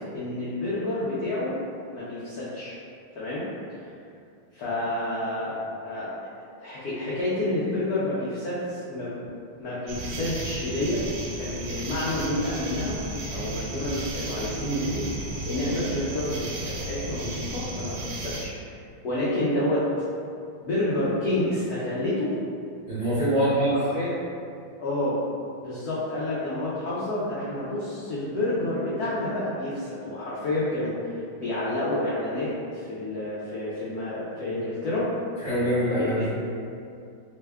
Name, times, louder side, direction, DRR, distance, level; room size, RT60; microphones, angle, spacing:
voice 1, 0.1-1.5 1.9-2.8 3.2-3.5 3.7-3.8 4.5-5.6 5.8-6.1 6.6-9.2 9.6-11.0 11.3-13.0 13.3-16.4 16.8-18.8 19.0-20.0 20.6-22.3 23.7-24.2 24.8-25.2 25.6-35.1 36.0-36.3, left 1 dB, 90° left, -9 dB, 0.8 m, -29 dB
sound 1, 9.9-18.5, right 2 dB, 75° right, 1.4 m, -34 dB
voice 2, 22.9-23.7 35.4-36.3, right 1 dB, 45° right, -15 dB, 0.7 m, -24 dB
3.5 x 2.2 x 3.4 m, 2.5 s
omnidirectional pair, 2.4 m